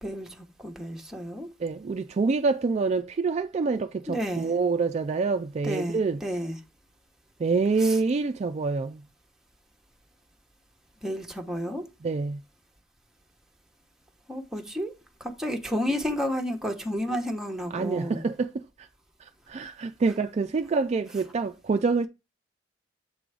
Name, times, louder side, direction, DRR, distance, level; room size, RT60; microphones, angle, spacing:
voice 1, 0.0-1.5 4.1-4.5 5.6-6.6 7.8-8.0 11.0-11.8 14.3-14.9 15.2-18.2, equal, 5° right, 0.9 m, -31 dB
voice 2, 1.6-6.2 7.4-9.0 12.0-12.4 17.7-18.9 19.2-22.1, right 4 dB, 35° right, 0.3 m, -26 dB
7.5 x 3.8 x 4.7 m
head